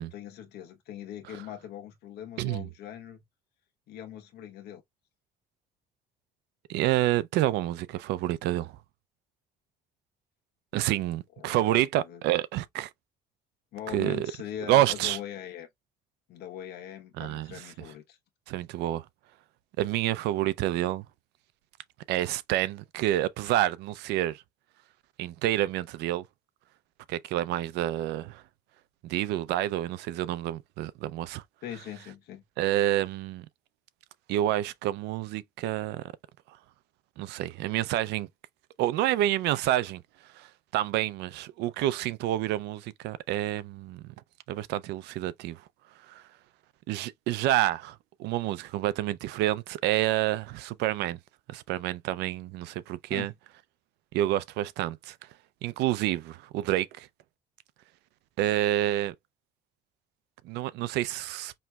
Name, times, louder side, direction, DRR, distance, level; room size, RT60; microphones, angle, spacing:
voice 1, 0.0-3.2 3.9-4.8 10.7-10.9 11.4-12.2 13.7-15.7 16.3-18.2 31.6-32.4 53.1-53.4, left 10 dB, 75° left, 1.1 m, -41 dB
voice 2, 6.7-8.8 10.7-12.9 13.9-14.3 14.7-15.2 17.2-17.6 18.5-19.0 19.8-21.0 22.1-24.4 25.2-26.2 27.1-28.4 29.0-31.4 32.6-33.5 34.3-36.1 37.2-38.3 38.8-40.0 40.3-44.0 44.5-45.6 46.1-46.2 46.9-51.2 51.5-53.3 54.1-55.1 55.6-57.1 58.4-59.1 60.4-61.5, right 14 dB, 85° right, 0.5 m, -28 dB
5.5 x 3.2 x 2.3 m
cardioid pair, 110°, 17 cm